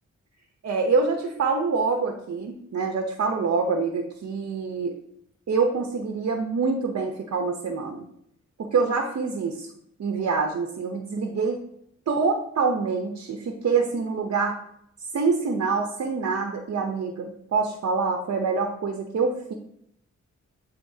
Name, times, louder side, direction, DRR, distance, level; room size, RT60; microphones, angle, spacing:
voice 1, 0.6-5.0 5.5-8.0 8.6-9.7 10.0-11.6 12.1-14.6 15.1-19.5, right 4 dB, 60° right, 4 dB, 0.8 m, -25 dB
11.0 x 4.3 x 2.8 m, 0.73 s
cardioid pair, 80°, 29 cm